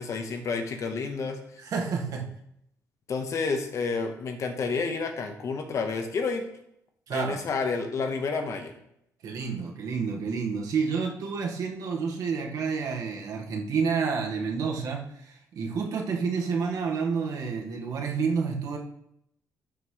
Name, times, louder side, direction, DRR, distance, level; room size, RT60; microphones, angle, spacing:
voice 1, 0.0-1.4 3.1-6.5 7.1-8.7, left 4 dB, 50° left, 5 dB, 1.3 m, -30 dB
voice 2, 1.6-2.3 7.1-7.4 9.2-18.8, right 5 dB, 65° right, 0 dB, 1.7 m, -29 dB
11.5 x 6.0 x 3.3 m, 0.75 s
cardioid pair, 120°, 7 cm